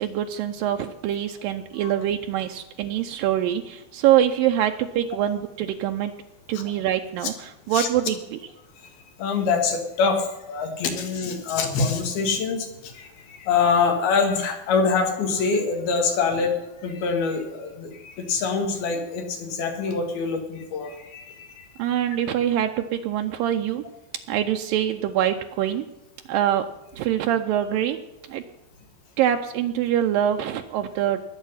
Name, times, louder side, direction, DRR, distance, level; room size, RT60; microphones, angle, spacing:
voice 1, 0.0-6.1 6.5-8.4 21.8-23.8 24.3-25.9 26.3-26.7 27.0-28.0 28.3-28.4 29.2-31.2, right 11 dB, 80° right, 5 dB, 2.3 m, -24 dB
voice 2, 9.2-16.5 16.8-21.7, left 5 dB, 85° left, 4 dB, 3.9 m, -25 dB
20.5 x 8.0 x 5.6 m, 1.0 s
omnidirectional pair, 4.3 m